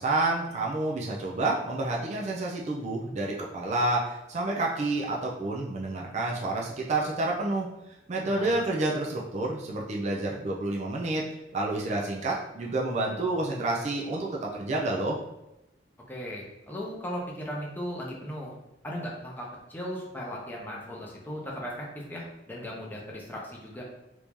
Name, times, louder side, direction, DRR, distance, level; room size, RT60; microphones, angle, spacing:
voice 1, 0.0-7.7 8.1-11.3 11.5-15.2, right 2 dB, 40° right, -2 dB, 0.4 m, -29 dB
voice 2, 8.2-8.6 16.1-18.5 18.8-23.8, equal, 10° left, -3 dB, 0.7 m, -37 dB
3.0 x 2.6 x 3.5 m, 0.91 s
head